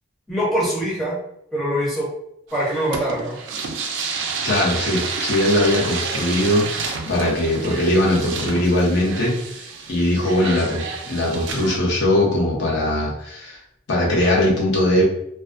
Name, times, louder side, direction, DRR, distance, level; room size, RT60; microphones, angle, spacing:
voice 1, 0.3-1.2 1.5-2.1 2.5-3.4, equal, ahead, -7 dB, 0.5 m, -23 dB
sound 1, 2.5-11.8, right 5 dB, 70° right, 0.4 m, -30 dB
voice 2, 4.4-13.6 13.9-15.0, left 1 dB, 65° left, -4 dB, 0.8 m, -20 dB
2.3 x 2.2 x 2.4 m, 0.76 s
head